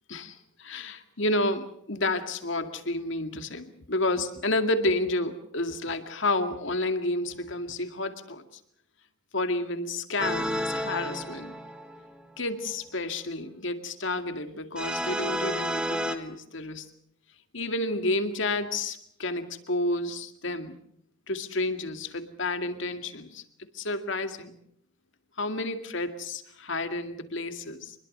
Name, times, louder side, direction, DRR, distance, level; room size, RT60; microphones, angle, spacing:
voice 1, 0.1-8.4 9.3-11.6 12.4-16.9 17.5-20.8 21.3-23.4 23.7-24.6 25.4-27.9, left 2 dB, 65° left, 8 dB, 2.2 m, -30 dB
sound 1, 10.2-12.2 14.8-16.2, equal, 5° right, 1.4 m, -31 dB
26.0 x 21.5 x 6.7 m, 0.70 s
head